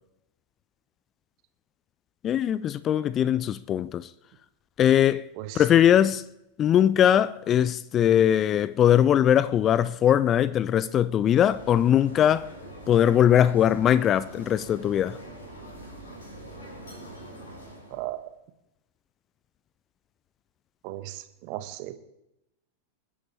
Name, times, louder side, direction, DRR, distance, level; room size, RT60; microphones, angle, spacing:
voice 1, 2.2-4.1 4.8-5.2 5.6-6.2 6.6-12.5 12.9-15.2, left 10 dB, 30° left, 0.4 m, -21 dB
voice 2, 5.3-5.7 17.9-18.3 20.8-22.0, right 15 dB, 45° right, 1.3 m, -36 dB
sound 1, 11.3-18.2, right 1 dB, 70° left, 5.9 m, -44 dB
28.0 x 10.5 x 3.3 m
figure-of-eight pair, 90°, 0 cm